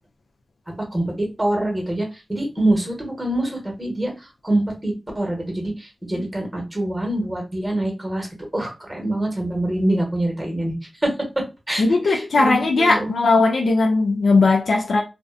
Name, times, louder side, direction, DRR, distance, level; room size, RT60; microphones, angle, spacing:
voice 1, 0.8-8.3 8.5-10.8 11.0-13.1, right 1 dB, 20° right, 1.0 m, -25 dB
voice 2, 11.8-15.0, left 3 dB, 85° left, 0.3 m, -18 dB
2.5 x 2.1 x 2.4 m
wide cardioid pair, 70°, 0 cm